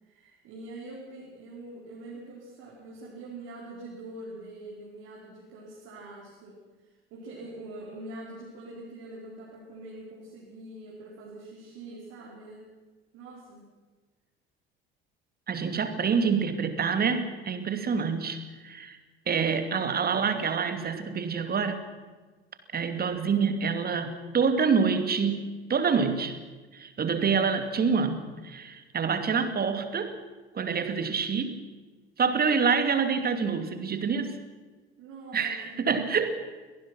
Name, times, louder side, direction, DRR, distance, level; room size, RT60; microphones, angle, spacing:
voice 1, 0.0-12.6 13.1-13.7 35.0-35.9, right 2 dB, 55° right, -4 dB, 5.1 m, -44 dB
voice 2, 15.5-19.0 19.3-21.8 22.7-26.3 26.7-30.2 30.5-31.6 32.2-34.4 35.3-36.3, right 5 dB, 30° right, 8 dB, 2.6 m, -27 dB
23.5 x 18.5 x 6.1 m, 1.3 s
figure-of-eight pair, 60°, 30 cm